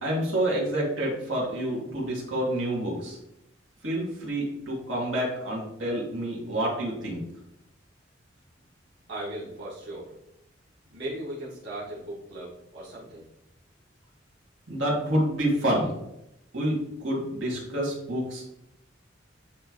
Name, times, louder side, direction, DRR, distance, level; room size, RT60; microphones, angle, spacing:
voice 1, 0.0-3.2 3.8-7.2 14.7-15.9 16.5-16.8 17.0-18.5, right 1 dB, 90° right, -4 dB, 2.3 m, -28 dB
voice 2, 9.1-10.1 10.9-13.2, right 1 dB, 65° right, -8 dB, 1.8 m, -37 dB
9.7 x 3.3 x 3.1 m, 0.83 s
head